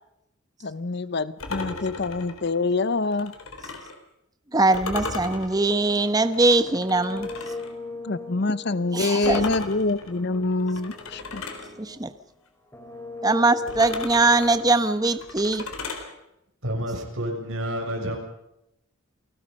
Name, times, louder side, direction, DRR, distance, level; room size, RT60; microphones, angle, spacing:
voice 1, 0.6-3.3 8.0-11.4, left 3 dB, 50° left, 16 dB, 0.7 m, -26 dB
sound 1, 1.4-4.0 4.7-7.7 9.2-11.7 13.7-16.1, left 3 dB, 80° left, 4.0 m, -36 dB
voice 2, 4.5-7.3 8.9-9.5 11.8-12.1 13.2-15.6, right 2 dB, 20° right, 11 dB, 1.0 m, -21 dB
sound 2, 5.6-12.3 12.7-14.9, left 3 dB, 10° left, 3.5 m, -39 dB
voice 3, 16.6-18.2, equal, 70° right, 2 dB, 6.8 m, -29 dB
29.0 x 19.0 x 5.4 m, 0.82 s
head